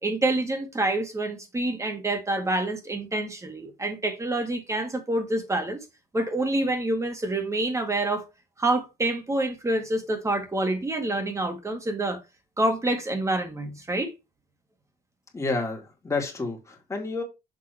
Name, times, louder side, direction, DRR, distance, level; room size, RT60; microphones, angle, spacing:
voice 1, 0.0-5.8 6.1-8.2 8.6-12.2 12.6-14.1, right 2 dB, 15° right, 1.8 m, -27 dB
voice 2, 15.3-17.2, left 3 dB, 15° left, 2.2 m, -30 dB
6.6 x 3.6 x 4.5 m
cardioid pair, 110°, 17 cm